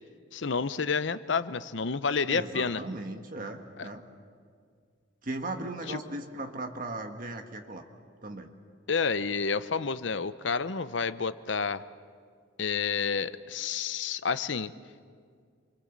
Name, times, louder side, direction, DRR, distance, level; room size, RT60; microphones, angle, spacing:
voice 1, 0.3-2.8 3.8-3.9 5.9-6.0 8.9-11.8 12.6-14.7, left 5 dB, 70° left, 14 dB, 0.7 m, -29 dB
voice 2, 2.3-4.0 5.2-7.8 8.2-8.5, right 2 dB, 45° right, 4 dB, 1.5 m, -37 dB
29.0 x 24.0 x 7.4 m, 2.1 s
head